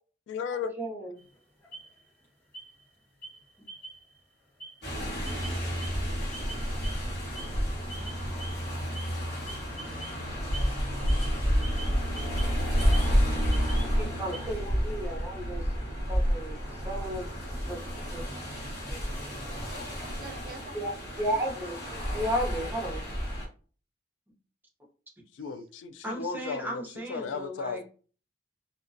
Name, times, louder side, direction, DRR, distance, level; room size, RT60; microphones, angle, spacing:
voice 1, 0.3-0.7 13.8-14.0 25.4-26.8 27.1-27.8, left 5 dB, 80° left, 10 dB, 0.3 m, -35 dB
voice 2, 0.8-1.2 14.0-15.7 16.1-17.8 18.1-18.3 18.9-19.0 20.7-21.8 22.1-23.0 26.0-27.8, right 1 dB, 10° right, 0 dB, 0.6 m, -34 dB
sound 1, 1.2-2.3 2.5-2.9 3.2-4.2 4.5-20.9, right 2 dB, 10° left, 0.9 m, -48 dB
sound 2, 4.8-23.5, equal, 60° left, 1.2 m, -30 dB
voice 3, 19.5-22.3 25.4-25.6, right 3 dB, 50° right, 6 dB, 0.4 m, -48 dB
2.3 x 2.1 x 2.5 m, 0.39 s
head